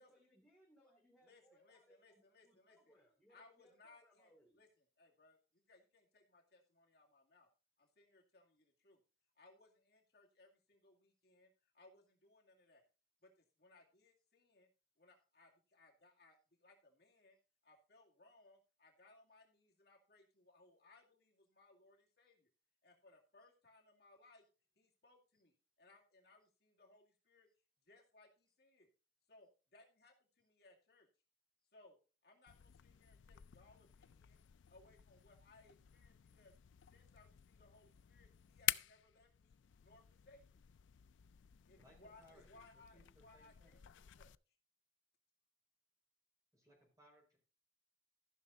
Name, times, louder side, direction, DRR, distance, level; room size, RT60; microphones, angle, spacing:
voice 1, 0.0-4.6, equal, 5° left, -5 dB, 2.7 m, -71 dB
voice 2, 1.2-3.0 3.3-4.7 5.0-7.5 7.8-9.0 9.4-12.8 13.2-14.7 15.0-17.4 17.6-22.5 22.8-24.5 24.8-27.5 27.8-28.9 29.3-31.1 31.7-32.0 32.2-34.4 34.7-36.5 36.9-40.6 41.6-44.3, left 2 dB, 55° left, 0 dB, 2.2 m, -67 dB
sound 1, 32.5-44.4, left 14 dB, 80° left, 0.4 m, -48 dB
voice 3, 41.8-43.8 46.5-47.4, left 1 dB, 20° right, 0 dB, 4.6 m, -67 dB
14.0 x 6.2 x 4.0 m, 0.34 s
head